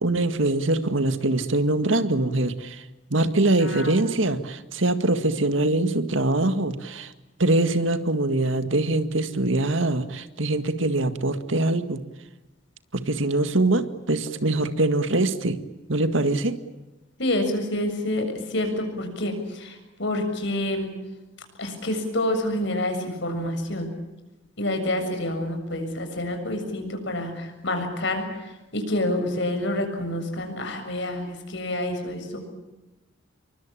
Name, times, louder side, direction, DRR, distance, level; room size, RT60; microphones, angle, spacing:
voice 1, 0.0-2.8 3.1-7.1 7.4-12.0 12.9-15.6 15.9-16.6, right 2 dB, 75° right, 10 dB, 2.0 m, -23 dB
voice 2, 3.6-4.0 17.2-20.9 21.6-23.9 24.6-32.5, left 1 dB, 65° left, 6 dB, 7.1 m, -28 dB
28.5 x 23.5 x 8.8 m, 1.0 s
head